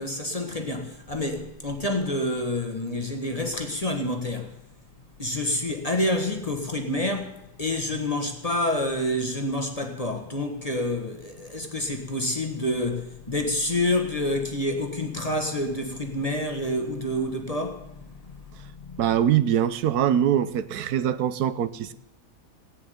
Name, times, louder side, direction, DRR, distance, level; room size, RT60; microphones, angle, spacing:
voice 1, 0.0-4.6 5.2-19.1, left 1 dB, 25° left, 3 dB, 1.5 m, -28 dB
voice 2, 19.0-21.9, right 10 dB, 75° right, 14 dB, 1.3 m, -23 dB
17.5 x 7.1 x 9.5 m, 0.86 s
omnidirectional pair, 1.7 m